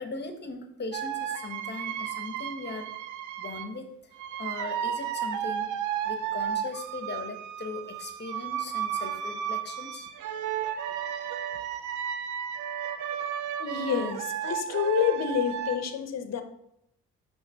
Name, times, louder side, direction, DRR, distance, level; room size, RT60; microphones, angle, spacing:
voice 1, 0.0-2.9 3.4-3.9 4.4-10.1, left 3 dB, 35° left, 6 dB, 1.1 m, -39 dB
sound 1, 0.9-3.7 4.1-15.8, right 9 dB, 80° right, 0.6 m, -33 dB
voice 2, 13.6-16.4, left 8 dB, 60° left, 9 dB, 0.8 m, -28 dB
5.9 x 3.3 x 5.5 m, 0.77 s
cardioid pair, 90°, 30 cm